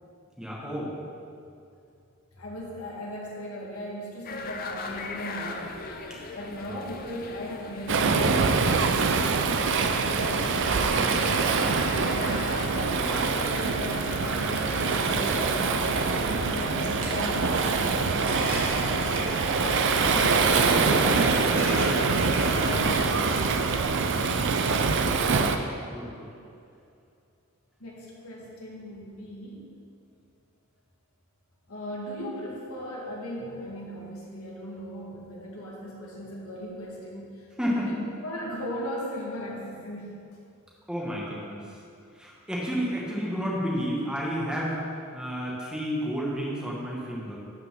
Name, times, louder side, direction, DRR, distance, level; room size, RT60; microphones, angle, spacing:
voice 1, 0.4-0.9 6.6-6.8 25.8-26.3 37.6-38.0 40.9-41.6 42.2-44.8 45.1-47.4, equal, 5° right, -5 dB, 1.5 m, -31 dB
voice 2, 2.3-5.8 6.3-19.3 19.6-24.3 27.8-29.7 31.7-40.2, equal, 80° left, -3 dB, 1.8 m, -38 dB
sound 1, 4.2-23.0, left 3 dB, 40° left, 0.6 m, -40 dB
Waves surf, 7.9-25.6, right 4 dB, 55° right, 0.5 m, -24 dB
Coin (dropping), 14.2-23.4, right 1 dB, 75° right, 1.7 m, -36 dB
12.0 x 5.6 x 3.6 m, 2.5 s
head